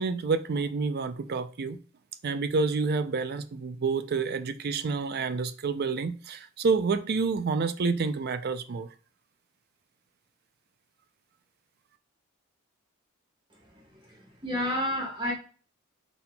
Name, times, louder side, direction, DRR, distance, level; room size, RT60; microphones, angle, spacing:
voice 1, 0.0-1.8 2.2-8.9, right 4 dB, 50° right, 0.4 m, -28 dB
voice 2, 13.6-15.3, left 1 dB, 25° right, 1.6 m, -31 dB
5.6 x 4.1 x 2.3 m
head